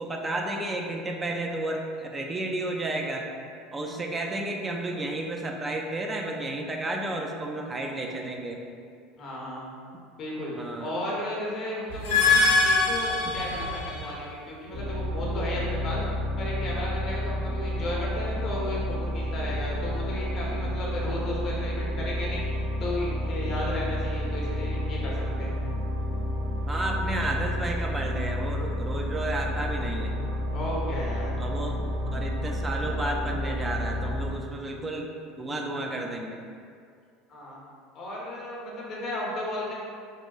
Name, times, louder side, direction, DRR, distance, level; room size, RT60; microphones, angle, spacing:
voice 1, 0.0-3.3 3.7-8.6 10.6-10.9 26.7-30.2 31.4-31.8 32.1-36.4, right 2 dB, 20° right, 1 dB, 0.3 m, -32 dB
voice 2, 9.2-9.7 10.2-16.0 16.4-25.6 30.5-31.3 37.3-37.6 37.9-39.7, left 1 dB, 45° left, -4 dB, 0.7 m, -34 dB
sound 1, 11.9-14.2, left 3 dB, 80° left, 0.4 m, -23 dB
sound 2, 14.7-34.3, equal, 65° right, 1.1 m, -30 dB
3.0 x 2.2 x 2.3 m, 2.3 s
hypercardioid pair, 75°, 0 cm